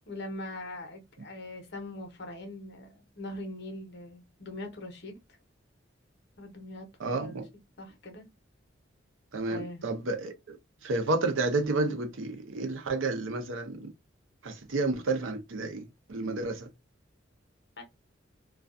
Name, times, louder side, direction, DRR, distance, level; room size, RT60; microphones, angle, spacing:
voice 1, 0.1-5.2 6.4-7.4 7.8-8.3 9.5-9.8 17.8-17.9, left 1 dB, 60° left, 0.8 m, -41 dB
voice 2, 7.0-7.4 9.3-10.6 10.8-13.9 14.4-16.7, right 3 dB, 85° right, 0.6 m, -31 dB
2.4 x 2.3 x 2.4 m
head